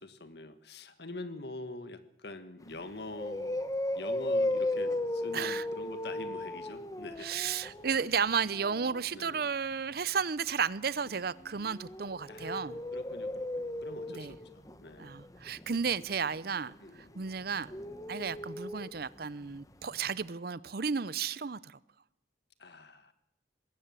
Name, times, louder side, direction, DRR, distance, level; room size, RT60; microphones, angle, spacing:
voice 1, 0.0-3.6 3.9-7.3 9.1-9.5 11.0-11.2 12.3-15.2 16.8-17.2 18.2-18.5 22.6-23.1, left 2 dB, 60° left, 1.7 m, -45 dB
sound 1, 2.7-2.8 3.1-9.0 11.2-19.2 19.5-19.6 19.9-20.0, left 1 dB, 20° left, 1.1 m, -36 dB
voice 2, 5.3-5.6 7.2-12.8 14.2-14.3 15.0-17.7 18.1-21.8, right 6 dB, 55° right, 0.6 m, -33 dB
20.0 x 17.5 x 7.5 m
head